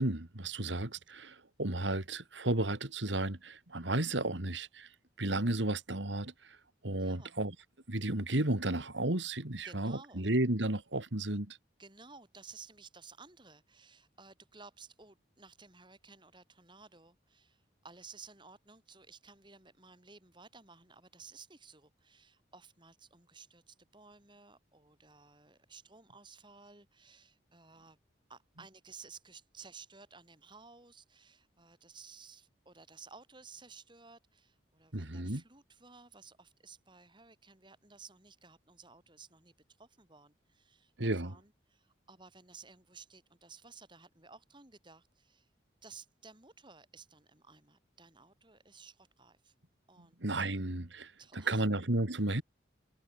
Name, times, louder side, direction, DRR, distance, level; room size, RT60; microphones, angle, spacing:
voice 1, 0.0-4.9 5.2-6.6 6.8-7.5 7.9-11.6 34.9-35.4 41.0-41.4 50.0-52.4, right 1 dB, 80° right, 2.6 m, -33 dB
voice 2, 7.0-7.3 9.6-10.2 11.8-28.0 28.3-45.5 45.8-49.5 49.9-50.2 51.2-51.6, right 5 dB, 25° right, 6.7 m, -55 dB
head